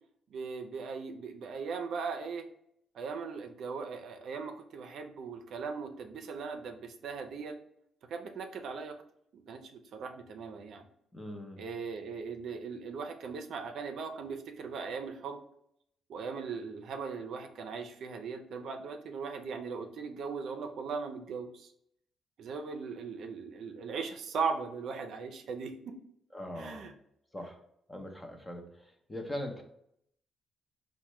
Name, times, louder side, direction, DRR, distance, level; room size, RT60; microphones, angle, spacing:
voice 1, 0.3-2.5 2.9-7.6 8.1-9.0 9.3-10.9 11.6-15.4 16.1-21.7 22.4-26.0 26.6-26.9, right 5 dB, 70° right, 5 dB, 0.4 m, -39 dB
voice 2, 11.1-11.6 26.3-26.9 27.3-27.6 27.9-29.6, left 1 dB, 15° left, 3 dB, 0.7 m, -41 dB
4.3 x 2.1 x 3.0 m, 0.73 s
cardioid pair, 90°, 0 cm